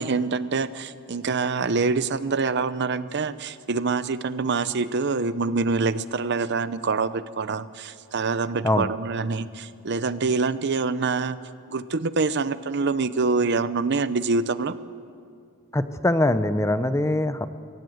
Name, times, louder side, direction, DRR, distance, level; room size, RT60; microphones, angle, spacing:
voice 1, 0.0-11.4 11.7-14.8, right 4 dB, 55° right, 14 dB, 0.7 m, -25 dB
voice 2, 15.7-17.5, left 1 dB, 15° left, 12 dB, 0.7 m, -22 dB
25.0 x 17.0 x 7.8 m, 2.3 s
head